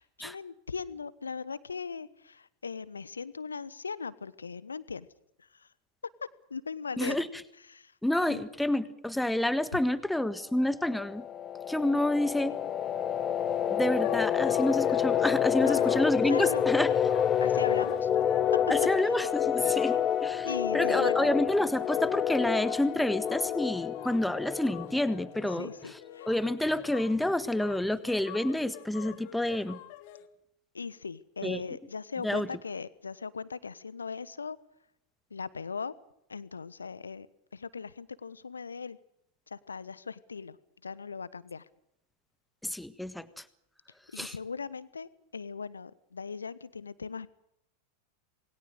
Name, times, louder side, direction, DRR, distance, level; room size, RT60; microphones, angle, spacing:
voice 1, 0.0-5.1 5.4-5.7 6.5-7.3 7.7-7.9 8.3-8.4 15.6-15.9 16.3-16.6 17.4-18.1 19.0-19.2 19.8-19.9 20.4-21.4 25.5-26.3 30.7-34.6 35.3-35.9 36.3-37.3 37.5-39.0 39.5-40.6 40.8-41.6 44.1-47.3, left 5 dB, 75° left, 18 dB, 1.1 m, -39 dB
voice 2, 7.0-7.3 8.0-11.2 11.7-12.5 13.7-16.9 18.7-20.5 20.7-26.0 26.3-29.8 31.4-31.6 32.2-32.5 42.6-43.4 44.2-44.3, left 1 dB, 5° left, 14 dB, 1.5 m, -29 dB
sound 1, 10.8-25.4, left 9 dB, 25° left, 1.4 m, -28 dB
sound 2, 13.8-30.3, left 13 dB, 50° left, 2.3 m, -47 dB
27.5 x 21.0 x 6.7 m, 0.79 s
figure-of-eight pair, 90°, 0 cm